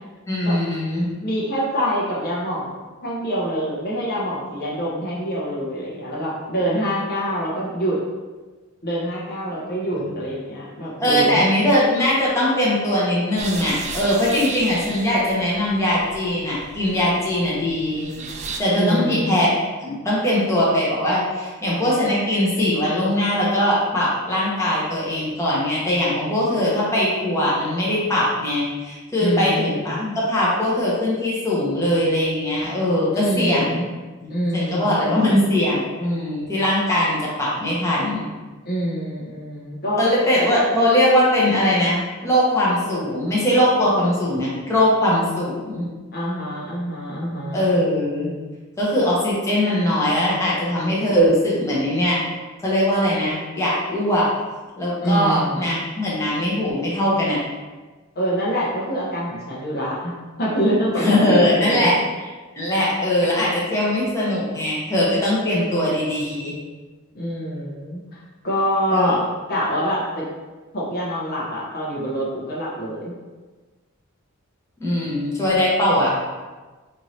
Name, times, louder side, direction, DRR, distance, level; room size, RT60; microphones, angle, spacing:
voice 1, 0.3-1.1 9.9-10.1 11.0-18.1 18.6-19.5 19.8-33.8 34.2-38.2 40.0-45.9 47.5-48.4 48.8-52.2 52.6-54.3 54.8-57.4 61.0-61.9 62.5-66.6 68.9-69.1 74.8-76.1, left 1 dB, 15° left, -7 dB, 0.9 m, -21 dB
voice 2, 1.2-2.8 3.0-8.0 8.8-11.5 18.7-19.4 29.2-30.0 33.2-33.9 34.3-35.5 38.6-40.0 46.1-47.7 55.0-55.8 58.2-60.1 60.4-61.9 67.2-68.0 68.4-69.2 69.5-70.3 70.7-73.1, equal, 50° left, -5 dB, 0.9 m, -25 dB
sound 1, 13.4-18.6, right 4 dB, 35° right, 0.4 m, -35 dB
4.5 x 2.7 x 3.1 m, 1.3 s
head